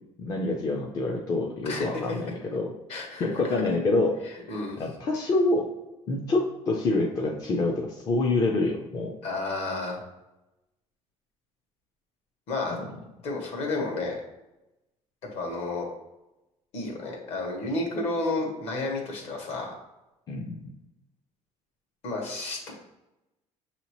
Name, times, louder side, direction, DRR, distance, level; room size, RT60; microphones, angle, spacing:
voice 1, 0.2-2.7 3.2-4.2 4.8-5.7 6.1-9.2 12.7-12.8 20.3-20.7, left 2 dB, 30° left, 0 dB, 0.4 m, -26 dB
voice 2, 2.9-3.3 4.5-4.8 9.2-10.0 12.5-12.8 13.2-14.2 15.3-15.9 16.7-19.7 22.0-22.7, left 2 dB, 60° left, 1 dB, 1.2 m, -31 dB
6.2 x 2.8 x 2.9 m, 0.96 s
cardioid pair, 165°, 12 cm